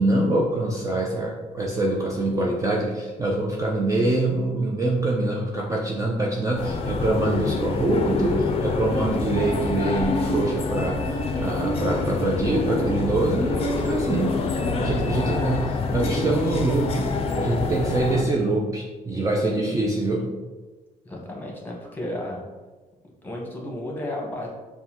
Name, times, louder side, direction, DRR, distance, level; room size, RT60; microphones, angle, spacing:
voice 1, 0.0-20.3, right 2 dB, 20° right, -1 dB, 0.5 m, -25 dB
sound 1, 6.6-18.2, left 3 dB, 45° left, 0.5 m, -26 dB
voice 2, 14.8-15.3 21.0-22.4 23.2-24.5, left 1 dB, 15° left, -2 dB, 1.1 m, -33 dB
5.3 x 2.2 x 2.9 m, 1.3 s
cardioid pair, 90°, 15 cm